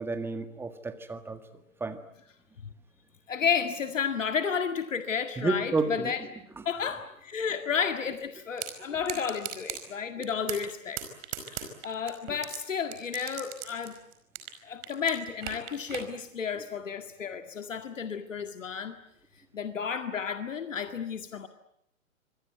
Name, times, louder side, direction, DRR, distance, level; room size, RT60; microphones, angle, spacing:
voice 1, 0.0-1.4 1.8-2.0 5.4-6.1, right 3 dB, 5° right, 9 dB, 1.7 m, -30 dB
voice 2, 3.3-6.2 6.6-11.0 11.5-14.0 14.6-19.0 19.5-21.5, left 6 dB, 65° left, 8 dB, 2.0 m, -32 dB
sound 1, 8.6-8.7 9.1-9.8 10.2-10.7 11.0-12.6 12.9-14.6 14.8-16.1, right 12 dB, 35° right, 5.0 m, -37 dB
26.0 x 22.0 x 9.3 m, 0.77 s
figure-of-eight pair, 120°, 41 cm